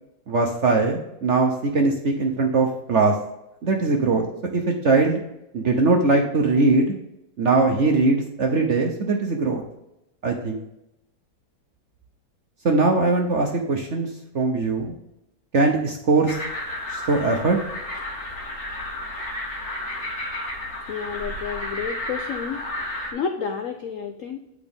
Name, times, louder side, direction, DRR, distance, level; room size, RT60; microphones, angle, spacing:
voice 1, 0.3-3.2 3.6-4.2 4.5-5.2 5.5-6.9 7.4-9.6 10.2-10.6 12.6-14.1 14.3-14.9 15.5-16.4 16.9-17.6, right 3 dB, 55° right, 2 dB, 0.9 m, -21 dB
sound 1, 16.3-23.1, left 1 dB, 40° left, 1.5 m, -32 dB
voice 2, 20.9-22.6 23.1-24.4, left 6 dB, 75° left, 5 dB, 0.7 m, -30 dB
8.4 x 4.9 x 3.5 m, 0.87 s
omnidirectional pair, 2.1 m